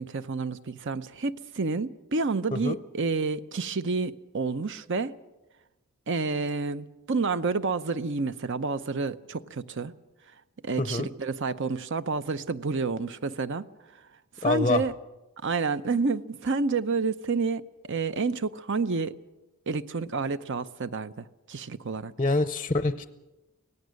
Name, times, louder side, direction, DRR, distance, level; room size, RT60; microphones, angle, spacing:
voice 1, 0.0-5.2 6.1-9.9 10.6-13.7 14.4-14.9 15.4-19.1 19.7-22.1, right 4 dB, 55° right, 0.7 m, -29 dB
voice 2, 10.8-11.1 14.4-14.8 22.2-23.1, left 3 dB, 25° left, 0.6 m, -25 dB
24.5 x 17.5 x 6.5 m
head